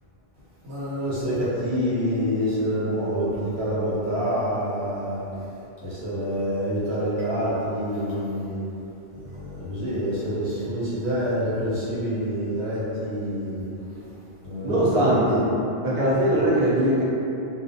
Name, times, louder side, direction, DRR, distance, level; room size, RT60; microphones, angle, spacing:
voice 1, 0.6-5.2 5.8-8.6 9.2-13.7 14.4-15.2 16.3-16.5, equal, 90° right, -10 dB, 1.1 m, -27 dB
voice 2, 14.6-15.5 15.8-17.0, right 1 dB, 45° right, -7 dB, 0.5 m, -21 dB
2.4 x 2.1 x 2.6 m, 2.9 s
omnidirectional pair, 1.1 m